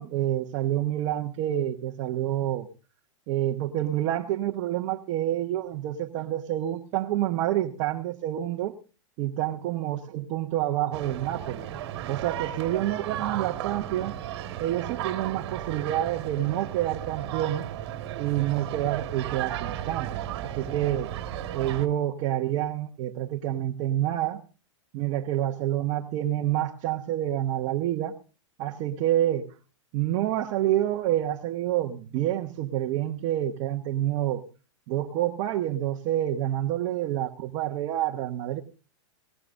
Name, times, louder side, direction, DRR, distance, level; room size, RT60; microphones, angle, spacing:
voice 1, 0.0-2.7 3.3-8.8 9.2-11.7 12.1-14.1 14.6-17.6 18.2-20.3 20.6-21.1 21.5-24.4 24.9-28.2 28.6-29.5 29.9-34.4 34.9-38.6, right 13 dB, 35° right, 1 dB, 1.1 m, -28 dB
sound 1, 10.9-21.9, right 11 dB, 55° right, 1.9 m, -34 dB
19.0 x 19.0 x 2.6 m, 0.33 s
supercardioid pair, 155°, 16 cm